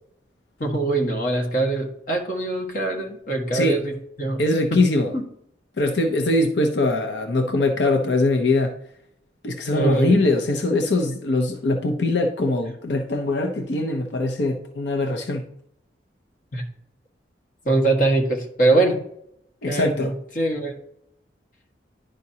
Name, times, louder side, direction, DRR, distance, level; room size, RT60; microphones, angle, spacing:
voice 1, 0.6-4.4 4.7-4.8 5.1-5.2 9.7-10.2 16.5-16.6 17.6-19.0 19.6-20.7, right 2 dB, 50° left, 1.5 m, -23 dB
voice 2, 4.4-5.1 5.8-8.7 9.4-15.4 19.6-20.1, left 2 dB, 90° left, 0.7 m, -22 dB
10.5 x 5.1 x 2.8 m
head